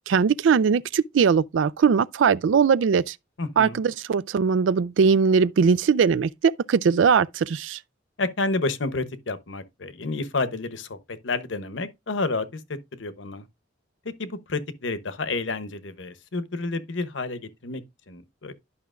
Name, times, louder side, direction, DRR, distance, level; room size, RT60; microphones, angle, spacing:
voice 1, 0.1-3.1 3.6-7.8, right 6 dB, 70° right, 0.4 m, -20 dB
voice 2, 3.4-3.8 8.2-13.5 14.0-18.5, left 3 dB, 70° left, 0.9 m, -30 dB
11.5 x 5.8 x 2.4 m
head